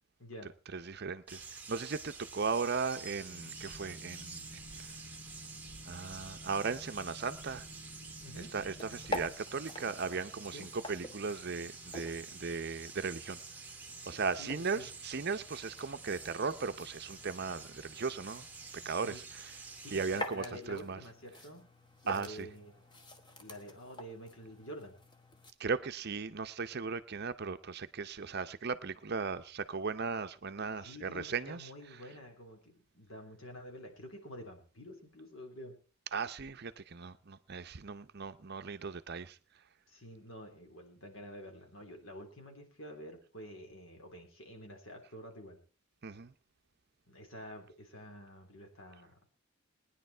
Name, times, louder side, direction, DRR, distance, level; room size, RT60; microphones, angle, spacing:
voice 1, 0.2-0.5 8.2-8.5 10.5-10.7 14.4-14.9 19.0-19.2 19.8-21.7 22.0-22.8 23.4-25.0 30.8-35.8 39.9-45.6 47.1-49.3, equal, 60° left, 3.8 m, -48 dB
voice 2, 0.7-4.6 4.9-5.0 5.9-7.6 8.5-13.4 14.1-18.4 18.8-19.5 19.9-21.0 22.1-22.5 25.6-31.7 36.1-39.4 46.0-46.3, right 5 dB, 45° right, 0.7 m, -37 dB
sound 1, 1.3-20.2, right 4 dB, 10° right, 1.3 m, -49 dB
Boat Water vehicle, 3.3-9.3, left 1 dB, 85° left, 6.0 m, -52 dB
sound 2, 8.5-25.5, left 1 dB, 20° left, 1.3 m, -48 dB
19.0 x 10.0 x 4.5 m
head